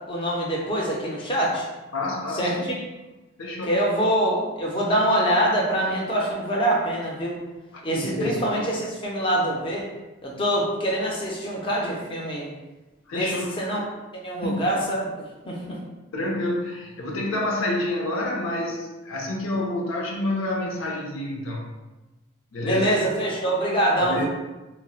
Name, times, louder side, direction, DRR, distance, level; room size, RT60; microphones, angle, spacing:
voice 1, 0.1-1.7 2.3-2.5 3.7-7.4 7.8-9.9 10.2-12.5 13.1-13.3 13.6-13.8 14.2-15.8 22.6-24.2, right 1 dB, 25° left, -3 dB, 0.5 m, -24 dB
voice 2, 1.9-2.7 3.4-3.8 7.7-8.4 13.1-13.6 14.4-14.7 16.1-21.7 22.5-22.9 24.0-24.2, left 1 dB, 80° left, -1 dB, 0.6 m, -28 dB
4.1 x 2.0 x 2.3 m, 1.1 s
head